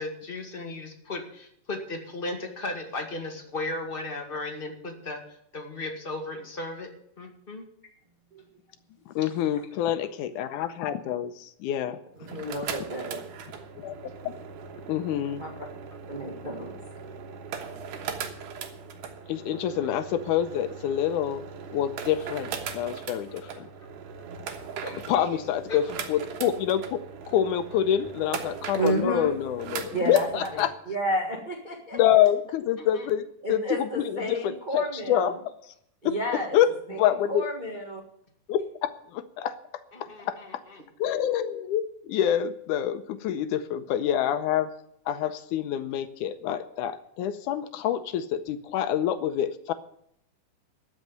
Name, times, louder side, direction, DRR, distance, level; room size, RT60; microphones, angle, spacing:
voice 1, 0.0-6.9 7.2-7.6 12.3-12.4 24.8-25.0 25.3-25.4 25.7-25.8 32.9-33.0 39.9-40.8, left 2 dB, 20° left, 2 dB, 1.7 m, -36 dB
voice 2, 9.1-12.0 13.8-13.9 14.2-14.3 14.9-15.4 19.3-21.4 21.7-23.6 25.1-27.0 27.3-30.7 31.9-33.2 33.5-35.3 36.1-36.2 36.5-36.7 37.0-37.5 38.5-38.6 39.1-39.6 40.3-40.4 41.0-44.7 45.1-49.7, left 10 dB, 80° left, 11 dB, 2.1 m, -26 dB
sound 1, 12.2-30.7, right 6 dB, 80° right, 2.7 m, -39 dB
voice 3, 12.3-13.2 15.4-15.5 16.1-16.8 28.7-29.3 29.9-32.0 33.4-35.3 36.0-36.6 36.9-37.0 37.3-38.0, right 1 dB, 25° right, 0 dB, 0.9 m, -31 dB
13.0 x 6.3 x 9.3 m, 0.72 s
omnidirectional pair, 3.7 m